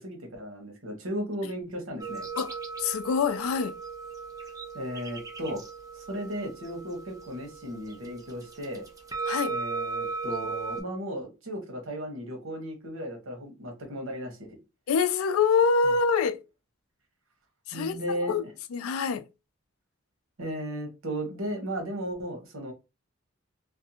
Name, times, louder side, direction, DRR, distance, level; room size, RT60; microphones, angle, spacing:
voice 1, 0.0-2.2 4.7-5.6 5.9-8.8 9.5-14.6 17.7-18.5 20.4-22.7, equal, 70° right, 1.0 m, -35 dB
sound 1, 2.0-10.8, right 4 dB, 15° right, 0.4 m, -37 dB
voice 2, 2.8-3.8 9.3-9.6 14.9-16.4 17.7-18.0 18.3-18.4 18.7-19.3, left 5 dB, 90° left, 0.3 m, -25 dB
2.6 x 2.1 x 2.7 m
head